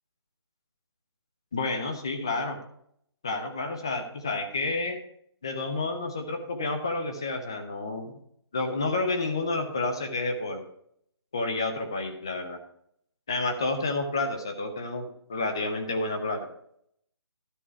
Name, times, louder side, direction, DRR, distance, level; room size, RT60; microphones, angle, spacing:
voice 1, 1.5-2.6 3.2-5.0 5.4-8.1 8.5-10.6 11.3-12.6 13.3-16.5, left 3 dB, 10° left, 6 dB, 0.4 m, -30 dB
12.5 x 4.7 x 5.6 m, 0.70 s
hypercardioid pair, 170°, 14 cm